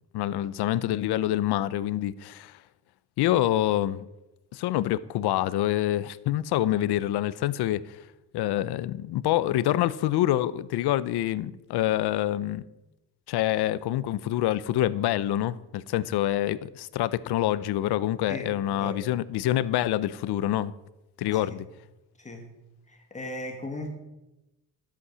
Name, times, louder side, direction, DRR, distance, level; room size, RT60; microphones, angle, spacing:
voice 1, 0.1-2.6 3.2-4.0 4.5-8.0 8.3-12.6 13.3-20.7 21.2-21.6, left 13 dB, 75° left, 0.7 m, -26 dB
voice 2, 18.3-19.1 21.3-21.5 22.2-22.6 22.9-23.9, left 1 dB, 20° left, 1.3 m, -38 dB
13.0 x 8.4 x 6.1 m
cardioid pair, 170°, 39 cm